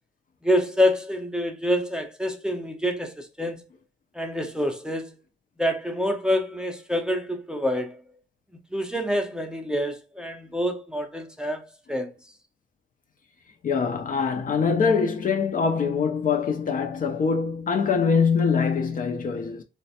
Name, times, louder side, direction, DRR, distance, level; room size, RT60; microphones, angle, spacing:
voice 1, 0.4-3.7 4.1-5.1 5.6-8.0 8.7-12.1, equal, 5° right, 0.6 m, -27 dB
voice 2, 13.6-19.6, left 5 dB, 40° left, 0.5 m, -23 dB
3.1 x 2.1 x 2.7 m
supercardioid pair, 60°, 21 cm